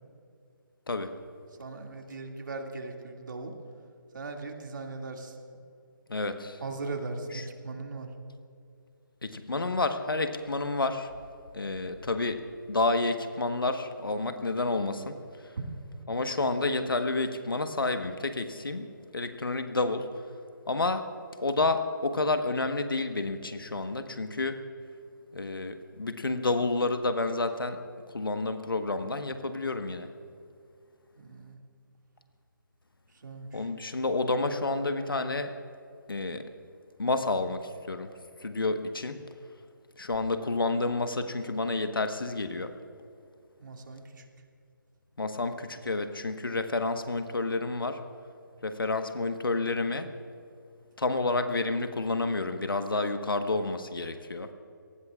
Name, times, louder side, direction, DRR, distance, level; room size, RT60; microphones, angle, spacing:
voice 1, 1.6-3.5 4.1-5.4 6.6-8.1 15.6-15.7 31.2-31.6 33.1-33.7 43.6-44.3, right 3 dB, 60° right, 2 dB, 2.3 m, -39 dB
voice 2, 6.1-6.6 9.2-11.1 11.5-15.2 16.1-20.1 20.7-21.1 21.4-24.6 25.3-27.8 28.1-30.1 33.5-35.5 36.1-36.4 37.0-37.6 37.9-38.1 38.4-39.2 40.0-42.7 45.2-48.0 48.6-50.1 51.0-54.5, left 3 dB, 85° left, 8 dB, 1.3 m, -29 dB
28.5 x 18.5 x 2.4 m, 2.5 s
figure-of-eight pair, 150°, 11 cm